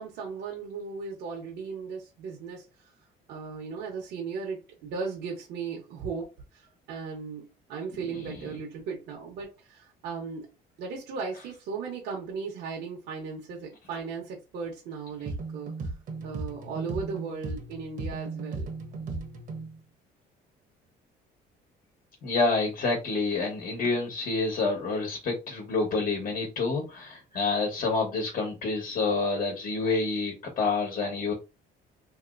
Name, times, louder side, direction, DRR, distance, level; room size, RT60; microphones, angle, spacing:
voice 1, 0.0-2.9 3.3-10.5 10.8-15.9 16.2-18.7, right 5 dB, 80° right, 1.0 m, -37 dB
sound 1, 15.3-19.8, right 3 dB, 55° right, 0.9 m, -36 dB
voice 2, 22.2-31.3, left 3 dB, 50° left, 1.2 m, -28 dB
3.0 x 2.9 x 2.5 m
cardioid pair, 110°, 17 cm